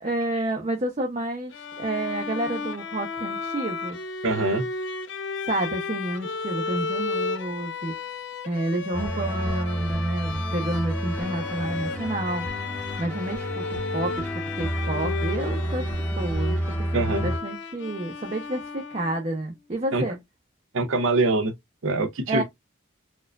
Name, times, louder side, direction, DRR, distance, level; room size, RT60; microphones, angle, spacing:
voice 1, 0.0-4.0 5.5-7.9 8.5-12.5 12.7-14.3 14.5-15.9 16.1-20.2 22.3-22.4, right 1 dB, 35° right, 0.6 m, -30 dB
Bowed string instrument, 1.5-19.3, left 4 dB, 60° left, 0.5 m, -34 dB
voice 2, 4.2-4.7 16.9-17.3 19.9-20.0 20.7-21.5 21.8-22.4, right 2 dB, 80° right, 0.6 m, -23 dB
sound 1, 8.9-17.4, equal, 10° left, 0.8 m, -30 dB
4.4 x 2.4 x 2.3 m
head